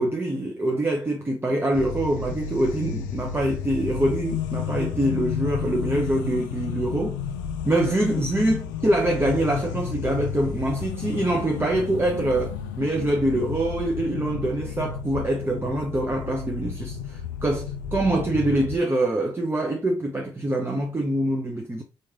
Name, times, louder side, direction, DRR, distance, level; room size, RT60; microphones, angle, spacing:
voice 1, 0.0-7.2 7.6-21.8, right 1 dB, 25° right, 1.0 m, -25 dB
sound 1, 1.7-18.8, left 8 dB, 90° left, 0.4 m, -32 dB
4.1 x 3.2 x 3.6 m
hypercardioid pair, 45°, 10 cm